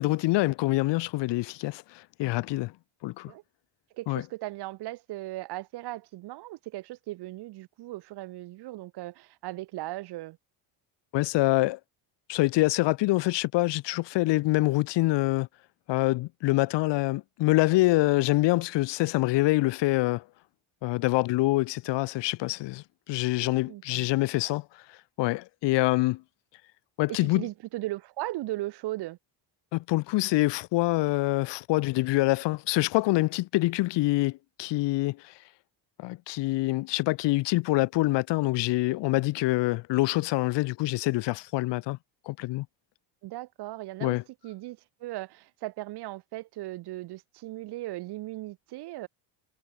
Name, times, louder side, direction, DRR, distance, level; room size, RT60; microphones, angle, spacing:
voice 1, 0.0-2.7 3.0-3.3 4.1-4.2 11.1-11.8 12.3-15.5 15.9-20.2 20.8-26.2 27.0-27.5 29.7-35.4 36.0-42.0 42.3-42.7 44.0-44.2, left 19 dB, 65° left, 1.0 m, -26 dB
voice 2, 3.9-10.4 23.4-24.0 24.4-24.6 27.1-29.2 43.2-44.2 44.4-49.1, right 17 dB, 55° right, 1.2 m, -37 dB
cardioid pair, 175°, 46 cm